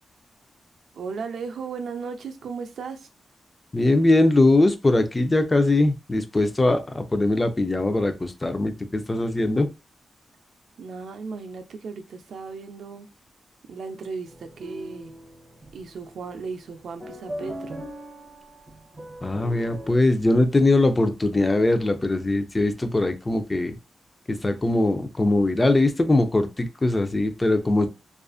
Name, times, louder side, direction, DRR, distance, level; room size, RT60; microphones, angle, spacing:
voice 1, 1.0-3.1 10.8-13.1 13.7-15.1 15.7-17.9, right 5 dB, 85° right, 6 dB, 0.4 m, -36 dB
voice 2, 3.7-9.7 19.2-23.8 24.3-27.9, left 2 dB, 20° left, 7 dB, 0.4 m, -21 dB
sound 1, 14.3-19.9, equal, 30° right, 1.2 m, -40 dB
2.4 x 2.4 x 2.3 m, 0.26 s
wide cardioid pair, 120°, 0 cm